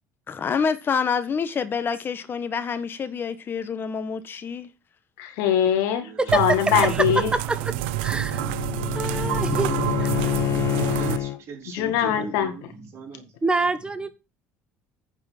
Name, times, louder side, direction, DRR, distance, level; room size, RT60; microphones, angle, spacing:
voice 1, 0.3-4.7, left 6 dB, 40° left, 1.3 m, -27 dB
voice 2, 5.2-6.0 6.3-7.3 11.7-12.5, left 9 dB, 80° left, 2.0 m, -22 dB
voice 3, 6.0-6.3 6.9-7.1 7.5-8.0 9.5-10.1 10.5-13.3, right 4 dB, 50° right, 5.0 m, -39 dB
sound 1, 6.3-11.2, right 17 dB, 90° right, 0.6 m, -28 dB
voice 4, 6.8-7.7 8.0-8.4 8.9-9.7 10.0-10.1 13.4-14.1, right 3 dB, 15° right, 1.3 m, -25 dB
Bowed string instrument, 7.3-11.4, left 14 dB, 55° left, 0.9 m, -28 dB
9.1 x 4.9 x 6.0 m
supercardioid pair, 90°, 6 cm